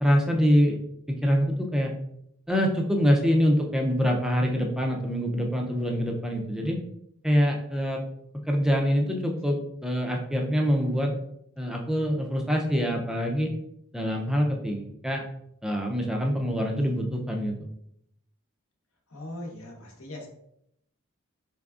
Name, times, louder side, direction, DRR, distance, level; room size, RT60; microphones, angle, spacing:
voice 1, 0.0-0.8 1.1-2.0 2.5-6.8 7.2-8.0 8.5-11.1 11.6-13.5 13.9-15.3 15.6-17.7, equal, ahead, 1 dB, 0.4 m, -25 dB
voice 2, 19.1-20.3, left 1 dB, 75° left, 0 dB, 0.9 m, -39 dB
3.7 x 3.3 x 2.3 m, 0.75 s
head